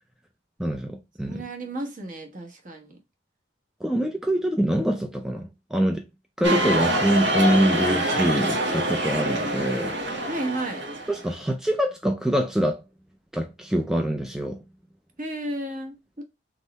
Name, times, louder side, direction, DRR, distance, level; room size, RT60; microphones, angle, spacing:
voice 1, 0.6-1.4 3.8-6.0 6.4-10.3 11.1-12.8 13.3-14.6, right 1 dB, 5° right, 0.4 m, -25 dB
voice 2, 1.3-3.0 10.3-10.8 15.2-16.2, right 1 dB, 45° right, 1.2 m, -33 dB
sound 1, 6.4-11.3, right 1 dB, 65° right, 1.3 m, -25 dB
3.6 x 3.2 x 4.0 m
head